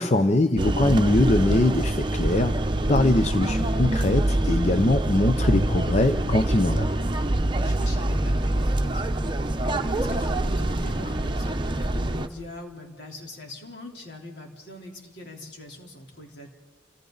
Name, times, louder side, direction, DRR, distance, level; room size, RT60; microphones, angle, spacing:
voice 1, 0.0-2.6 2.9-6.9, left 2 dB, 35° left, 8 dB, 0.7 m, -22 dB
sound 1, 0.6-12.3, right 1 dB, 25° right, 0.8 m, -25 dB
voice 2, 7.5-9.2 9.6-16.5, left 2 dB, 70° left, 0 dB, 3.7 m, -42 dB
29.5 x 26.5 x 4.0 m, 1.4 s
head